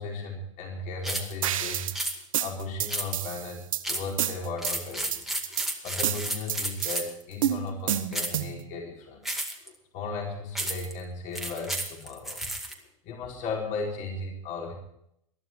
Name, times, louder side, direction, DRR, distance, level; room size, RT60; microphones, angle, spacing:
voice 1, 0.0-1.9 2.4-9.3 9.6-12.5 12.7-14.7, left 3 dB, 45° left, -1 dB, 4.6 m, -36 dB
sound 1, 1.0-1.3 1.9-2.2 2.9-3.3 3.8-4.1 4.6-7.2 8.1-8.4 9.2-9.7 10.5-10.9 11.3-12.7, right 1 dB, ahead, 2.2 m, -32 dB
sound 2, 1.4-2.0 2.3-3.8 4.2-4.7 5.1-5.7 6.0-7.0 7.4-8.6, right 11 dB, 80° right, 1.3 m, -29 dB
20.5 x 11.5 x 4.6 m, 0.75 s
hypercardioid pair, 110°, 17 cm